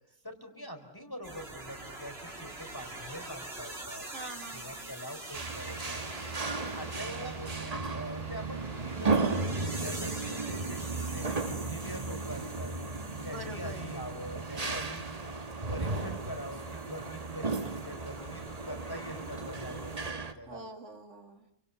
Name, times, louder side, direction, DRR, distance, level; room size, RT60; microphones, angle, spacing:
voice 1, 0.2-4.1 4.5-6.0 6.6-12.7 13.2-15.1 15.7-20.7, equal, 15° left, 6 dB, 4.1 m, -44 dB
sound 1, 1.2-20.1, right 2 dB, 55° right, 3.8 m, -46 dB
voice 2, 4.1-4.9 13.2-13.9 20.5-21.5, right 2 dB, 70° right, 6 dB, 2.6 m, -45 dB
sound 2, 5.3-20.3, right 3 dB, 30° right, 1.5 m, -35 dB
28.5 x 26.0 x 6.9 m, 0.74 s
omnidirectional pair, 1.3 m